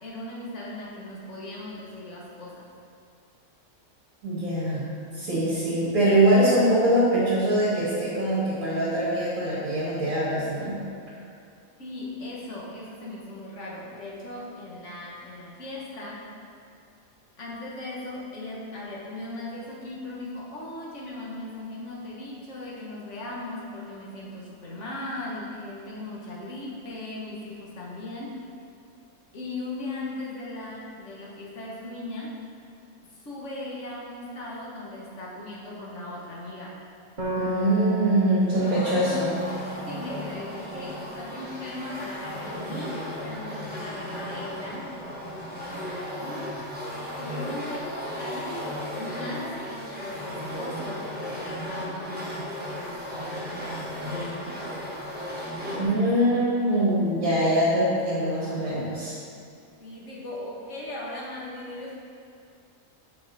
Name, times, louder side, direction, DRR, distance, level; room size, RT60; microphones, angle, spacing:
voice 1, 0.0-2.7 11.8-16.3 17.4-28.4 29.3-32.4 33.1-36.8 38.4-39.3 39.9-45.0 46.2-48.6 48.9-54.5 55.7-56.1 59.8-61.9, left 2 dB, 55° left, -5 dB, 1.6 m, -38 dB
voice 2, 4.2-4.8 5.1-10.8 37.4-39.3 55.8-59.2, right 1 dB, 65° right, -10 dB, 2.1 m, -23 dB
sound 1, 37.2-40.7, right 2 dB, 35° right, 1.3 m, -31 dB
sound 2, 38.5-55.8, equal, 5° right, 1.1 m, -35 dB
8.2 x 4.7 x 4.0 m, 2.4 s
omnidirectional pair, 1.5 m